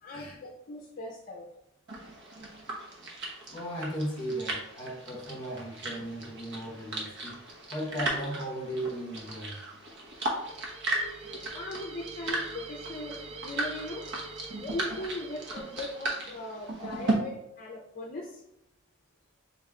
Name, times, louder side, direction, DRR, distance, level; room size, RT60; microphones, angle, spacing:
voice 1, 0.0-1.5 10.9-14.0 14.6-18.4, left 1 dB, 40° left, 0 dB, 0.5 m, -39 dB
sound 1, 1.9-17.1, right 2 dB, 55° right, 1.0 m, -36 dB
voice 2, 3.5-9.6, right 1 dB, 25° left, -2 dB, 1.5 m, -36 dB
sound 2, 10.0-16.4, right 4 dB, 25° right, 0.3 m, -45 dB
4.0 x 3.3 x 3.6 m, 0.84 s
head